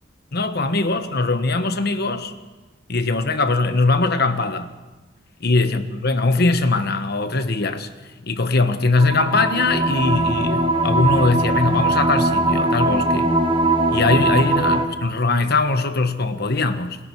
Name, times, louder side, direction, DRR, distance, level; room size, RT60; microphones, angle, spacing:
voice 1, 0.3-2.3 2.9-4.7 5.4-7.9 8.2-13.4 13.9-17.0, left 3 dB, 55° left, 9 dB, 1.3 m, -21 dB
sound 1, 9.0-14.9, right 2 dB, 25° right, 1.3 m, -20 dB
28.5 x 19.5 x 4.7 m, 1.2 s
head